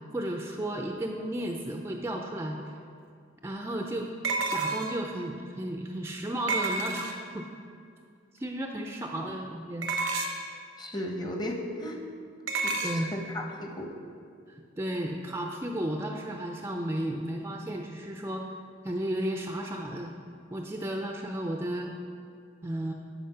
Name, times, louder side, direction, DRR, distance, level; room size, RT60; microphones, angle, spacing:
voice 1, 0.1-2.6 3.4-4.1 4.5-7.5 8.3-9.9 12.8-13.1 14.5-18.5 18.8-20.1 20.5-21.9 22.6-22.9, right 1 dB, 15° right, 2 dB, 0.4 m, -33 dB
sound 1, 2.7-2.8 4.2-5.1 6.5-7.4 9.8-10.5 12.5-13.0, right 3 dB, 85° right, 0.8 m, -30 dB
voice 2, 10.8-12.0 12.6-13.9, left 1 dB, 20° left, 2 dB, 0.9 m, -36 dB
10.0 x 5.0 x 5.5 m, 2.2 s
head